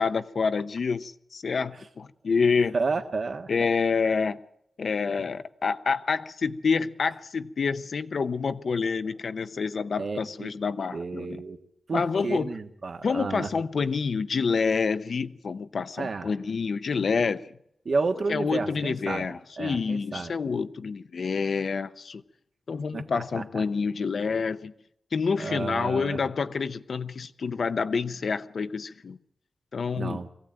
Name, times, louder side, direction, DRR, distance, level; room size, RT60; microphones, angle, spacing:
voice 1, 0.0-2.7 3.5-4.4 4.8-11.4 11.9-12.5 13.0-17.5 18.3-22.2 22.7-24.7 25.1-29.2 29.7-30.2, left 5 dB, 65° left, 0.8 m, -28 dB
voice 2, 2.7-3.5 10.0-10.5 10.9-11.6 11.9-13.5 16.0-16.3 17.9-19.3 19.6-20.3 22.9-23.6 25.4-26.2 30.0-30.3, right 4 dB, 55° right, 1.6 m, -31 dB
22.5 x 16.0 x 9.0 m
wide cardioid pair, 110°, 0 cm